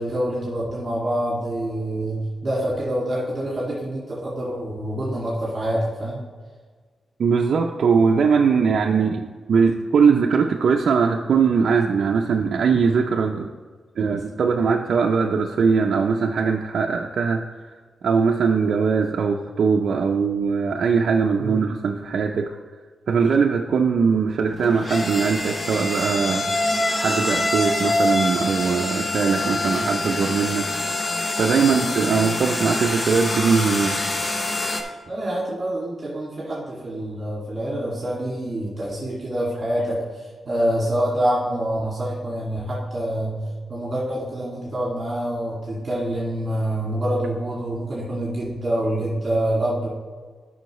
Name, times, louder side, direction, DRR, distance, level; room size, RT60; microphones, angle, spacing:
voice 1, 0.0-6.2 21.4-21.6 31.6-32.1 35.1-43.4 43.7-49.9, right 1 dB, 35° right, -6 dB, 2.2 m, -26 dB
voice 2, 7.2-13.5 14.0-17.7 18.0-22.6 23.1-26.5 27.0-30.7 31.4-34.0, right 5 dB, 65° right, 1 dB, 0.5 m, -21 dB
sound 1, 24.5-34.8, left 2 dB, 25° left, 0.9 m, -25 dB
12.0 x 5.6 x 3.1 m, 1.5 s
wide cardioid pair, 145°, 0 cm